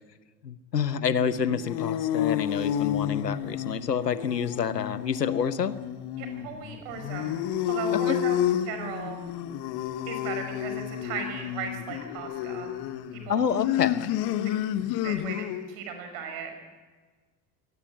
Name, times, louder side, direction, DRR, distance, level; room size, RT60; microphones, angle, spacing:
voice 1, 0.4-5.7 8.1-8.2 13.3-14.1, left 7 dB, 85° left, 15 dB, 1.0 m, -28 dB
sound 1, 1.2-15.7, left 11 dB, 55° left, 1.5 m, -30 dB
voice 2, 6.2-7.4 7.7-8.4 8.6-9.2 10.1-12.7 13.1-13.5 15.0-16.5, right 6 dB, 60° right, 5 dB, 6.1 m, -36 dB
23.5 x 18.5 x 8.7 m, 1.4 s
figure-of-eight pair, 65°, 48 cm